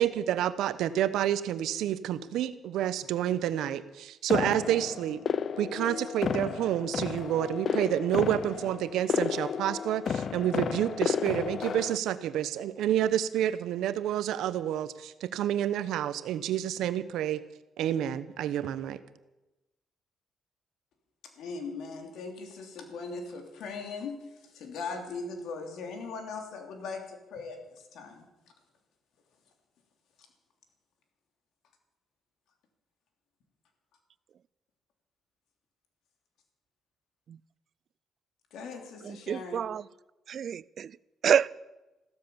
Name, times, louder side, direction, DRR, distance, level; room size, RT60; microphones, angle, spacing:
voice 1, 0.0-5.2 5.6-17.4 17.8-19.0, right 11 dB, 85° right, 14 dB, 0.9 m, -29 dB
sound 1, 4.3-12.0, left 7 dB, 55° left, 0.6 m, -32 dB
voice 2, 21.4-28.3 38.5-39.6, left 4 dB, 80° left, 4 dB, 3.2 m, -39 dB
voice 3, 39.0-39.9 40.3-41.0 41.2-41.5, right 8 dB, 60° right, 21 dB, 0.4 m, -28 dB
15.5 x 13.5 x 7.1 m, 1.0 s
cardioid pair, 90°, 0 cm